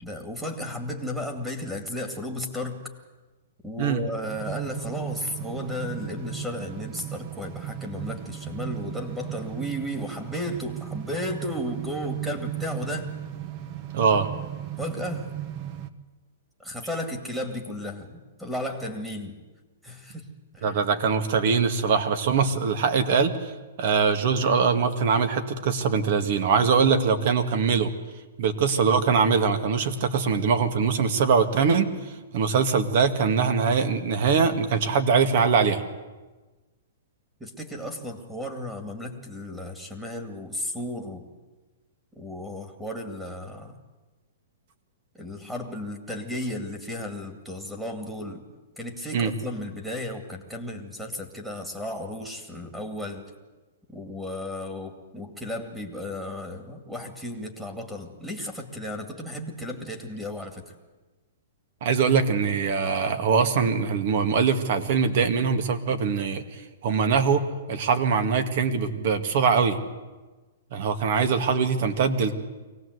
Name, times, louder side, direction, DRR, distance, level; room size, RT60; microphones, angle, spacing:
voice 1, 0.0-2.8 3.6-13.1 14.8-15.3 16.6-19.4 19.8-20.3 20.5-20.8 37.4-41.2 42.1-43.8 45.1-48.4 48.8-53.3 53.9-60.7, left 1 dB, 5° right, 3 dB, 2.3 m, -34 dB
sound 1, 4.3-15.9, right 12 dB, 35° right, 1.1 m, -36 dB
voice 2, 13.9-14.3 20.6-23.5 23.8-27.9 28.4-31.9 32.3-35.8 49.1-49.3 61.8-66.4 66.8-67.4 67.7-69.8 70.7-72.3, right 5 dB, 55° right, 9 dB, 1.9 m, -22 dB
24.0 x 18.0 x 8.1 m, 1.2 s
hypercardioid pair, 150°, 0 cm